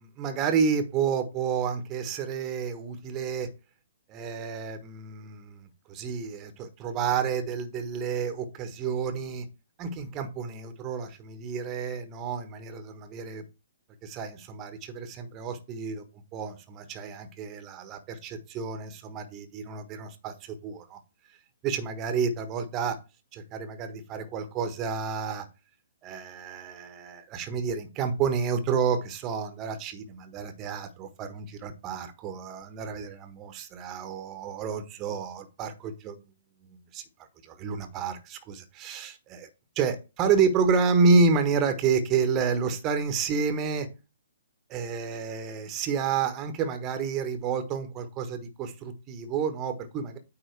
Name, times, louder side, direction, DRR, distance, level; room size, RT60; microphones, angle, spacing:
voice 1, 0.0-3.5 4.1-9.5 9.8-13.4 14.0-16.0 16.3-21.0 21.6-23.0 23.3-25.5 26.0-36.2 36.9-37.0 37.4-39.5 39.8-43.9 44.7-50.2, right 5 dB, 25° right, 8 dB, 1.3 m, -29 dB
9.3 x 3.6 x 4.7 m, 0.28 s
figure-of-eight pair, 125°, 0 cm